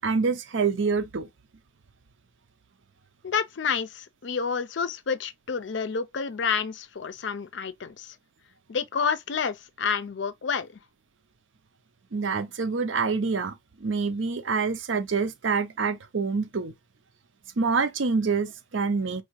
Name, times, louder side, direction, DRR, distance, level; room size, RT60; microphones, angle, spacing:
voice 1, 0.0-1.3 12.1-13.5 13.8-16.7 17.6-19.2, right 4 dB, 75° right, 0.6 m, -26 dB
voice 2, 3.2-8.2 8.7-10.7, left 6 dB, 65° left, 0.5 m, -29 dB
4.7 x 2.7 x 3.0 m
head